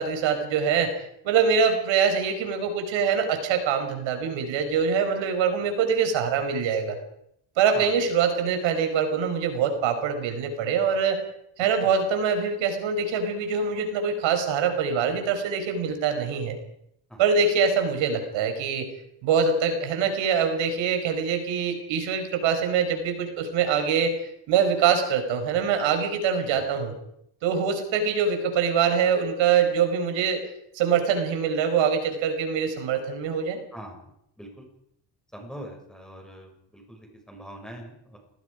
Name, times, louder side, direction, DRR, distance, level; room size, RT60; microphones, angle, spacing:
voice 1, 0.0-7.0 7.6-11.2 11.6-16.6 17.2-18.9 19.2-24.1 24.5-26.9 27.4-30.4 30.7-33.6, right 6 dB, 90° right, 6 dB, 5.0 m, -24 dB
voice 2, 34.4-34.7 35.3-38.2, equal, ahead, 1 dB, 6.8 m, -42 dB
28.0 x 19.5 x 5.1 m, 0.73 s
cardioid pair, 145°, 45 cm